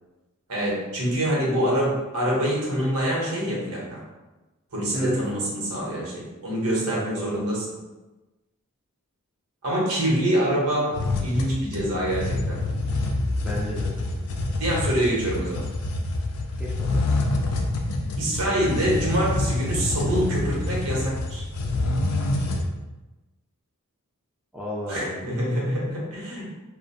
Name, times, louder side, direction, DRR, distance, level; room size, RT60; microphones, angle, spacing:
voice 1, 0.5-4.0 4.7-7.6 9.6-12.6 14.6-15.6 18.2-21.4 24.9-26.5, right 1 dB, 75° right, -4 dB, 0.9 m, -25 dB
voice 2, 6.8-7.4 13.3-13.9 16.6-17.0 24.5-25.2, equal, 5° right, -6 dB, 0.4 m, -34 dB
sound 1, 10.9-22.6, left 2 dB, 90° left, 0.4 m, -27 dB
2.4 x 2.1 x 2.6 m, 1.1 s
head